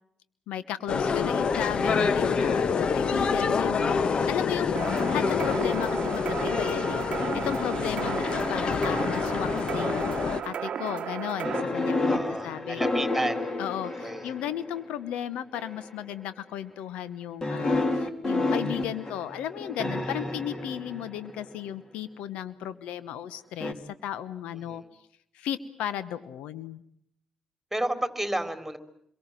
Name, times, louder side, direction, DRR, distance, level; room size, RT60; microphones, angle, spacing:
voice 1, 0.5-12.8 13.6-24.8 25.3-26.8, left 10 dB, 75° left, 15 dB, 1.1 m, -35 dB
sound 1, 0.9-10.4, left 5 dB, 50° left, 1.3 m, -26 dB
voice 2, 2.4-2.8 12.1-13.5 14.0-14.3 20.0-20.3 24.7-24.9 27.7-28.8, right 1 dB, 5° right, 9 dB, 3.9 m, -32 dB
sound 2, 4.8-11.6, right 8 dB, 60° right, 0.9 m, -34 dB
sound 3, 11.4-14.8 15.5-16.0 17.4-21.5 23.6-23.7, left 2 dB, 30° left, 3.4 m, -30 dB
27.5 x 23.0 x 7.6 m, 0.71 s
hypercardioid pair, 50°, 2 cm